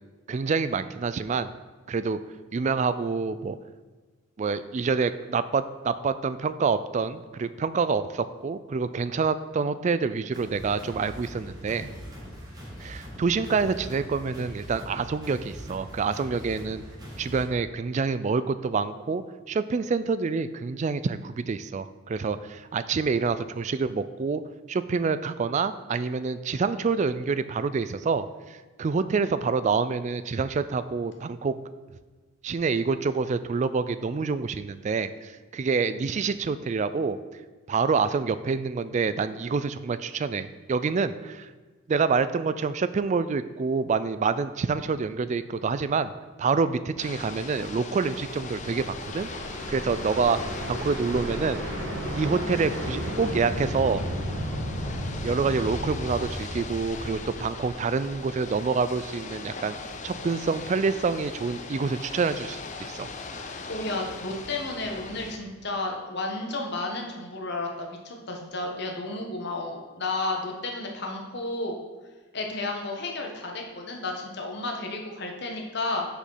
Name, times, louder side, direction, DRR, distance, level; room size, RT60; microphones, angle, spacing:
voice 1, 0.3-1.5 1.9-2.2 2.5-3.6 4.4-11.9 12.8-16.8 17.2-24.4 24.7-31.6 32.4-37.2 37.7-41.5 41.9-46.1 46.4-49.3 49.7-50.4 50.7-51.6 52.2-54.0 55.2-59.7 60.0-63.1, right 5 dB, 35° right, 13 dB, 0.3 m, -27 dB
sound 1, 10.3-17.4, equal, 20° right, 2.1 m, -42 dB
Ocean / Boat Water vehicle, 47.0-65.4, left 3 dB, 35° left, 0.6 m, -39 dB
sound 2, 48.2-58.2, equal, 85° right, 1.6 m, -34 dB
voice 2, 63.6-71.7 72.3-76.1, left 2 dB, 55° left, 2 dB, 1.2 m, -32 dB
6.7 x 5.2 x 5.6 m, 1.3 s
head